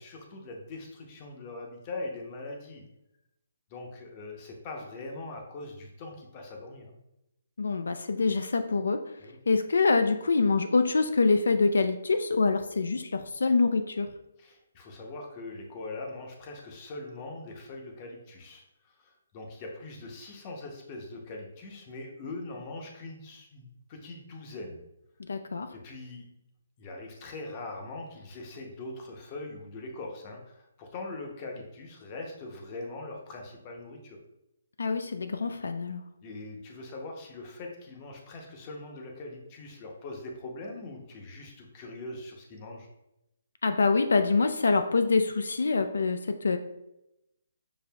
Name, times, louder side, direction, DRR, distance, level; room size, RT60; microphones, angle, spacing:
voice 1, 0.0-2.9 3.7-7.0 9.2-9.4 14.4-24.8 25.7-26.3 26.8-34.2 36.2-42.9, left 2 dB, 25° left, 1 dB, 0.7 m, -42 dB
voice 2, 7.6-9.0 9.5-14.1 25.3-25.7 34.8-36.0 43.6-46.6, left 4 dB, 85° left, 8 dB, 0.3 m, -25 dB
6.6 x 2.5 x 2.2 m, 0.89 s
hypercardioid pair, 165°, 0 cm